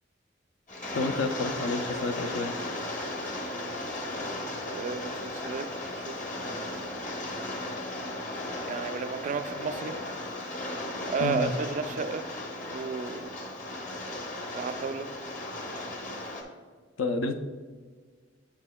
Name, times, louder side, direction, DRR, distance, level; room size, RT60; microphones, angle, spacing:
Rain, 0.7-16.4, left 1 dB, 40° left, 0.9 m, -36 dB
voice 1, 0.9-2.5 11.2-11.5 17.0-17.4, left 3 dB, 75° left, 7 dB, 0.5 m, -29 dB
voice 2, 4.7-7.1 8.6-10.0 11.1-12.3 12.6-13.4 14.5-15.1, right 5 dB, 40° right, 10 dB, 0.3 m, -33 dB
7.8 x 7.2 x 2.2 m, 1.5 s
head